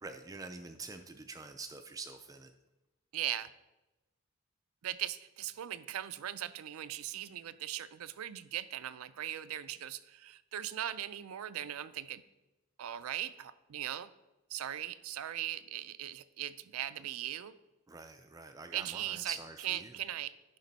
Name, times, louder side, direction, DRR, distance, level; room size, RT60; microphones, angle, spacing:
voice 1, 0.0-2.5 17.9-20.0, right 4 dB, 15° right, 7 dB, 0.3 m, -45 dB
voice 2, 3.1-3.5 4.8-12.2 12.8-14.1 14.5-17.5 18.7-19.4 19.6-20.6, right 12 dB, 90° right, 14 dB, 0.4 m, -39 dB
10.5 x 5.2 x 4.1 m, 1.0 s
head